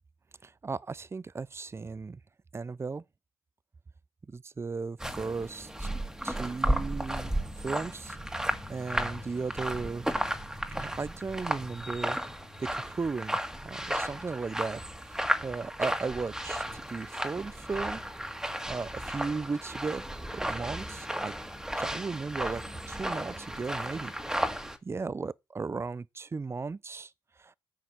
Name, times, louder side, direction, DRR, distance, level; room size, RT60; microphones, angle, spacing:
voice 1, 0.4-2.2 2.5-3.0 4.3-5.9 6.2-7.3 7.6-8.2 8.7-10.1 10.8-12.2 12.6-14.8 15.1-18.0 18.7-20.0 20.3-21.3 21.8-24.1 24.8-27.1 27.4-27.6, right 4 dB, 25° right, 0.6 m, -36 dB
sound 1, 5.0-24.8, right 1 dB, 5° right, 1.8 m, -34 dB
11.5 x 5.5 x 7.9 m
supercardioid pair, 60°, 10 cm